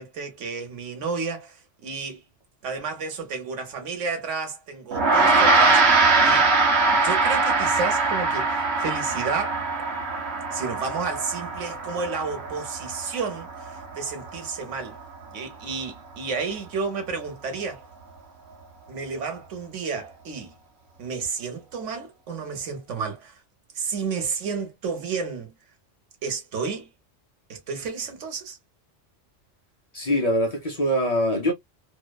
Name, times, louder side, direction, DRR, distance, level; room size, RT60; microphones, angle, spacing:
voice 1, 0.0-2.2 2.6-6.5 6.9-9.6 10.5-15.0 15.3-17.8 18.9-20.5 21.0-23.4 23.7-25.5 26.2-26.9 27.5-28.6, right 5 dB, 85° right, 1.2 m, -31 dB
Gong, 4.9-14.5, right 3 dB, 65° right, 1.0 m, -22 dB
voice 2, 29.9-31.5, equal, 40° left, 0.6 m, -23 dB
2.6 x 2.0 x 2.2 m
omnidirectional pair, 1.2 m